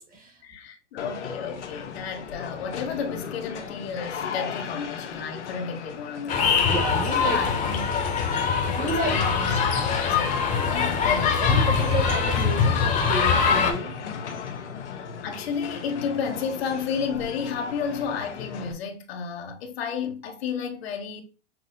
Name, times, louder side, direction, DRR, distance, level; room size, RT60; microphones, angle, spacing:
voice 1, 0.4-6.7 7.2-8.0 8.3-9.7 10.0-11.4 15.2-21.2, left 6 dB, 60° left, 1.1 m, -32 dB
sound 1, 1.0-18.7, left 7 dB, 80° left, 1.0 m, -37 dB
sound 2, 6.3-13.7, left 6 dB, 20° left, 1.0 m, -23 dB
voice 2, 6.6-7.4 8.7-9.2 11.4-14.4, right 2 dB, 25° right, 1.2 m, -31 dB
6.2 x 2.1 x 3.8 m
hypercardioid pair, 125°, 35 cm